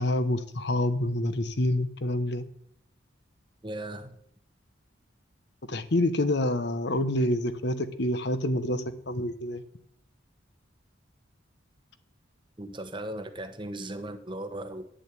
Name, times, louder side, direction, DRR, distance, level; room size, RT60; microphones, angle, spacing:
voice 1, 0.0-2.4 5.7-9.6, left 1 dB, 60° left, 12 dB, 0.9 m, -27 dB
voice 2, 3.6-4.2 12.6-14.8, right 1 dB, 25° right, 9 dB, 1.0 m, -37 dB
10.5 x 7.6 x 8.3 m, 0.70 s
head